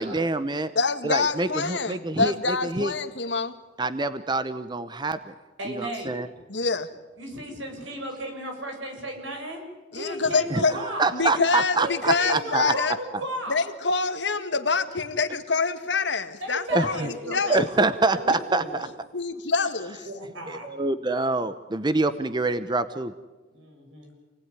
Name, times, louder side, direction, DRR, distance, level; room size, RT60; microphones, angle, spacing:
voice 1, 0.0-0.7 1.0-2.9 3.8-5.3 5.6-6.3 10.5-12.7 16.7-17.1 17.5-18.9 20.5-23.1, right 2 dB, 25° right, 12 dB, 0.9 m, -26 dB
voice 2, 0.8-3.5 6.5-6.9 9.9-10.8 11.1-13.0 13.5-17.6 19.1-20.0, left 4 dB, 65° left, 9 dB, 1.9 m, -26 dB
voice 3, 5.6-6.1 7.2-9.6 9.9-11.1 11.8-13.6 16.4-17.8 18.1-18.8 20.1-20.9 23.5-24.1, right 1 dB, 90° right, 3 dB, 7.1 m, -35 dB
28.5 x 19.0 x 9.8 m, 1.2 s
head